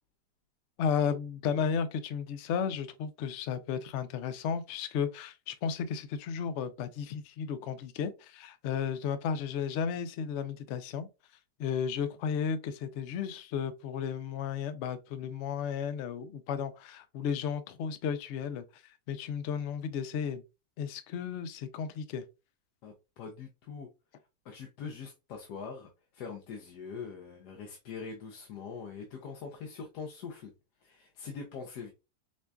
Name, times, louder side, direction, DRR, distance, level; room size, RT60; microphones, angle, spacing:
voice 1, 0.8-11.1 11.6-20.4 20.8-22.2, left 7 dB, 70° left, 0.7 m, -34 dB
voice 2, 22.8-23.9 24.4-30.5 30.8-31.9, left 5 dB, 85° left, 1.3 m, -43 dB
5.1 x 2.3 x 2.3 m
omnidirectional pair, 1.7 m